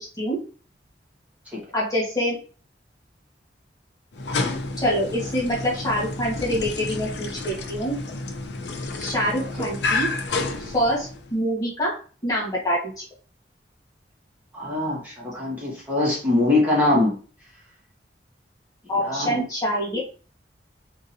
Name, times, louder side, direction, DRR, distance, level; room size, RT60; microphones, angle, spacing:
voice 1, 1.7-2.4 4.8-8.0 9.0-10.1 10.6-11.9 12.2-13.0 18.9-20.0, equal, 20° left, -6 dB, 1.2 m, -25 dB
sound 1, 4.1-11.3, left 3 dB, 80° left, 0.5 m, -30 dB
voice 2, 14.5-17.1 19.0-19.4, left 2 dB, 10° right, -7 dB, 1.2 m, -22 dB
3.7 x 2.8 x 2.6 m, 0.39 s
head